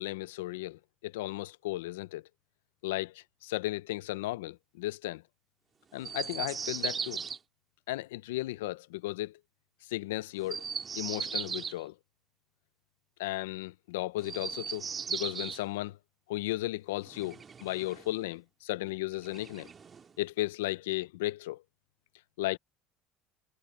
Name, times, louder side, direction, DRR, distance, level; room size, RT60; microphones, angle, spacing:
voice 1, 0.0-2.2 2.8-5.2 5.9-7.2 7.9-9.4 9.9-10.6 10.9-11.9 13.2-16.0 16.3-19.7 20.2-21.6 22.4-22.6, left 17 dB, 85° left, 0.7 m, -35 dB
Chirp tweet, 6.0-7.4 10.4-11.8 14.2-15.6 17.0-18.1 19.2-20.1, right 6 dB, 35° right, 2.5 m, -37 dB
supercardioid pair, 90°, 0 cm